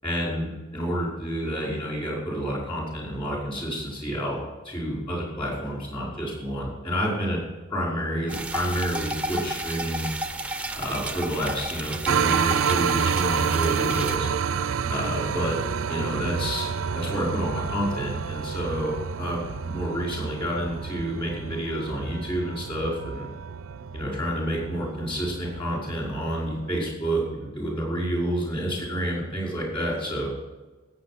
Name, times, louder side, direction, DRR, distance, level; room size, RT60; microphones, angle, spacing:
voice 1, 0.0-4.4 4.6-7.4 7.7-10.1 10.8-14.3 14.9-15.6 15.9-23.3 23.9-30.3, equal, 25° left, -3 dB, 5.3 m, -29 dB
sound 1, 8.3-14.2, right 1 dB, 5° right, 0.6 m, -33 dB
sound 2, 12.0-26.9, right 6 dB, 60° right, 0.4 m, -29 dB
17.0 x 7.9 x 6.1 m, 1.2 s
head